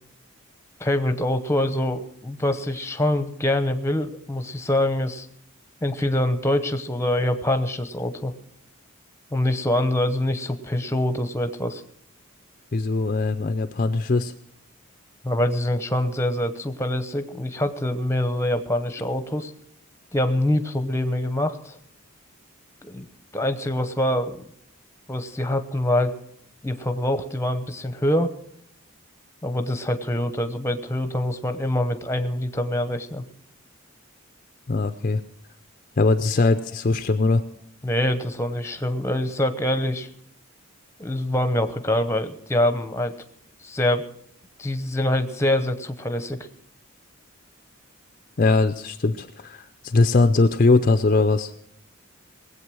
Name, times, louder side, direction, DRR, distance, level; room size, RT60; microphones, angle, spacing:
voice 1, 0.8-5.3 5.8-8.3 9.3-11.8 15.2-19.5 20.1-21.8 22.8-23.0 23.3-24.4 25.1-26.2 26.6-28.3 29.4-33.2 37.8-40.1 41.0-43.1 43.6-44.0 44.6-46.5, left 1 dB, 10° left, 9 dB, 0.8 m, -24 dB
voice 2, 12.7-14.3 34.7-35.2 36.0-37.4 48.4-51.5, left 3 dB, 40° left, 9 dB, 0.5 m, -20 dB
19.5 x 8.2 x 6.2 m, 0.68 s
head